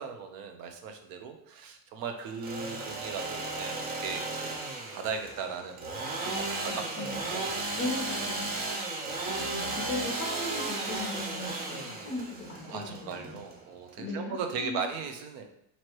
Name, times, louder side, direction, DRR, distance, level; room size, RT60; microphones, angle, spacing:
voice 1, 0.0-4.5 4.9-5.9 6.2-7.0 7.3-8.4 12.6-15.4, right 5 dB, 65° right, 5 dB, 0.7 m, -38 dB
Engine / Sawing, 2.2-13.9, right 2 dB, 25° right, 0.4 m, -35 dB
voice 2, 6.2-7.4 7.7-8.5 9.3-13.4 14.0-14.8, left 2 dB, 30° left, -1 dB, 0.9 m, -38 dB
3.1 x 2.8 x 4.4 m, 0.73 s
cardioid pair, 170°, 38 cm